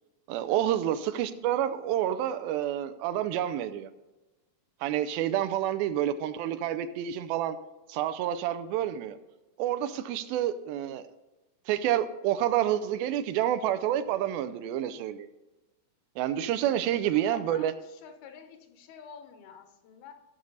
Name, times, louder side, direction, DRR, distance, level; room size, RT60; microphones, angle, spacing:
voice 1, 0.3-3.9 4.8-7.6 7.9-9.2 9.6-11.0 11.7-15.3 16.2-17.7, right 11 dB, 80° right, 12 dB, 2.4 m, -28 dB
voice 2, 5.2-5.8 16.6-20.1, left 7 dB, 80° left, 6 dB, 2.9 m, -49 dB
16.0 x 6.8 x 4.0 m, 1.1 s
omnidirectional pair, 4.3 m